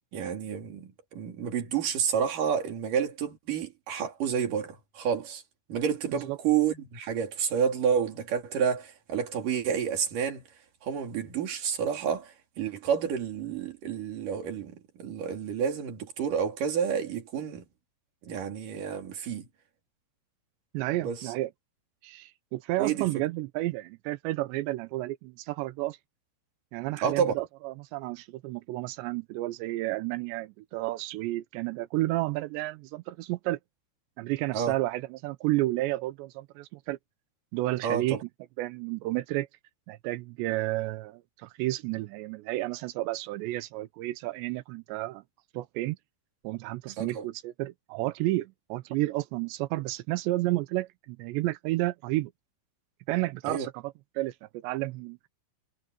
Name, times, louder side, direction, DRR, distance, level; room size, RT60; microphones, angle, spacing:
voice 1, 0.1-5.4 5.7-10.4 10.8-17.6 18.2-19.5 21.0-21.2 22.8-23.1 27.0-27.3 34.5-34.7 37.8-38.2 47.0-47.2 53.4-53.7, right 7 dB, 45° right, 4.0 m, -29 dB
voice 2, 20.7-21.5 22.0-26.0 26.7-33.6 34.2-37.0 37.5-38.2 38.6-39.5 39.9-45.2 45.5-46.0 46.4-52.3 53.1-55.3, right 18 dB, 85° right, 2.6 m, -31 dB
omnidirectional pair, 5.9 m